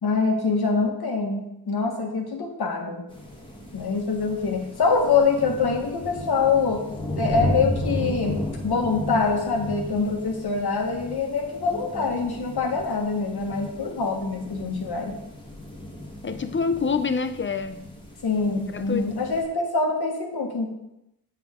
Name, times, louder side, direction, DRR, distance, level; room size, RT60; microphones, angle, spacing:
voice 1, 0.0-3.1 3.7-6.8 7.2-15.2 18.2-20.7, left 4 dB, 70° left, 1.6 m, -24 dB
sound 1, 3.1-19.4, left 1 dB, 10° left, 1.5 m, -35 dB
voice 2, 16.2-17.9 18.7-19.1, left 5 dB, 30° left, 0.5 m, -26 dB
7.6 x 7.3 x 3.7 m
wide cardioid pair, 125°, 39 cm